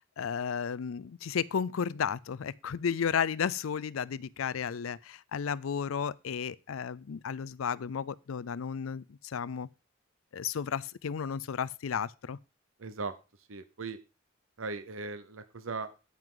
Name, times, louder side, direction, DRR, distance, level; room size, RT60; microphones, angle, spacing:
voice 1, 0.0-9.7 10.3-12.4, left 7 dB, 90° left, 0.4 m, -33 dB
voice 2, 12.8-13.2 13.5-14.0 14.6-15.9, right 4 dB, 85° right, 0.9 m, -38 dB
9.5 x 9.5 x 3.8 m
head